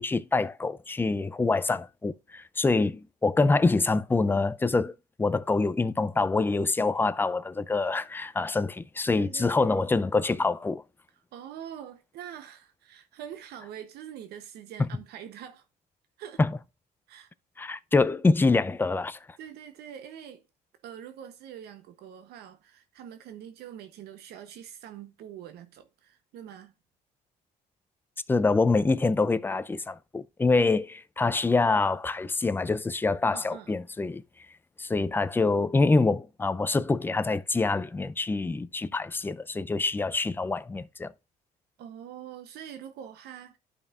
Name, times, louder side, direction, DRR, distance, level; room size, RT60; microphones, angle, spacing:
voice 1, 0.0-10.8 14.8-14.9 16.4-16.5 17.6-19.2 28.3-34.2 34.8-41.1, left 3 dB, 10° left, 0.4 m, -25 dB
voice 2, 9.1-9.8 11.3-15.6 16.2-16.4 17.1-17.3 17.6-17.7 19.4-20.4 20.8-26.7 33.3-33.7 41.8-43.6, right 9 dB, 75° right, 0.8 m, -44 dB
11.5 x 5.3 x 2.4 m
cardioid pair, 110°, 17 cm